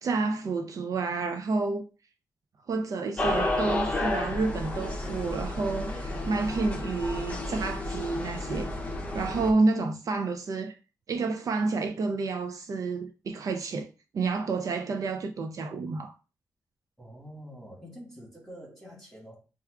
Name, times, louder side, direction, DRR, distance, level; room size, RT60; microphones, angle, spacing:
voice 1, 0.0-1.9 2.7-8.7 9.1-10.7 11.1-13.9 14.1-16.1, right 3 dB, 60° right, 0.4 m, -29 dB
sound 1, 3.2-9.5, left 2 dB, 20° left, 0.6 m, -31 dB
voice 2, 17.0-19.4, equal, ahead, 1.7 m, -46 dB
5.5 x 2.3 x 2.4 m
wide cardioid pair, 120°, 7 cm